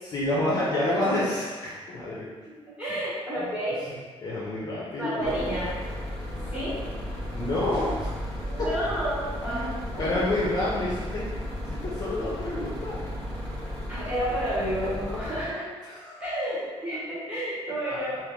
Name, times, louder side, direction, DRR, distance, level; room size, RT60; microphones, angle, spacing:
voice 1, 0.0-2.3 3.4-3.5 4.2-5.5 7.3-8.3 8.6-8.7 9.5-9.7 10.0-11.3 11.6-13.0 15.8-16.3 17.9-18.0, left 1 dB, 35° left, -6 dB, 0.5 m, -29 dB
voice 2, 2.8-3.8 5.0-5.7 6.5-6.7 8.5-10.1 13.9-15.6 16.2-18.2, right 1 dB, 15° right, -10 dB, 1.1 m, -30 dB
sound 1, 5.2-15.4, left 1 dB, 10° left, 1.0 m, -35 dB
sound 2, 6.9-10.0, right 1 dB, 50° right, 0.5 m, -43 dB
2.9 x 2.4 x 3.5 m, 1.4 s
cardioid pair, 165°, 11 cm